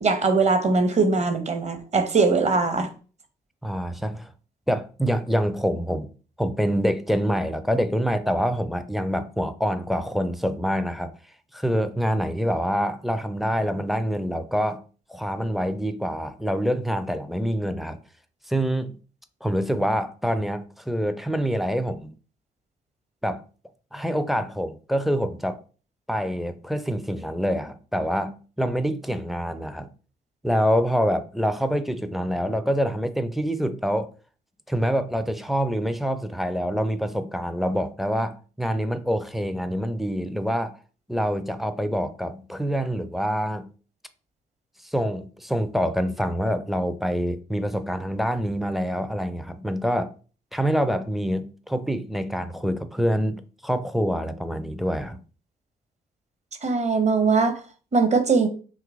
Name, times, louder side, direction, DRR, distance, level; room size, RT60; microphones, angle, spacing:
voice 1, 0.0-2.9 56.6-57.6 57.9-58.5, right 4 dB, 35° right, 0.8 m, -21 dB
voice 2, 3.6-4.3 4.7-6.1 6.4-11.1 11.5-14.8 15.1-18.0 18.5-19.0 19.4-22.1 23.2-23.4 23.9-25.6 26.1-29.9 30.4-34.1 34.7-40.7 41.1-43.7 44.8-50.1 50.5-55.2, equal, ahead, 0.4 m, -26 dB
2.9 x 2.4 x 3.5 m
figure-of-eight pair, 40°, 21 cm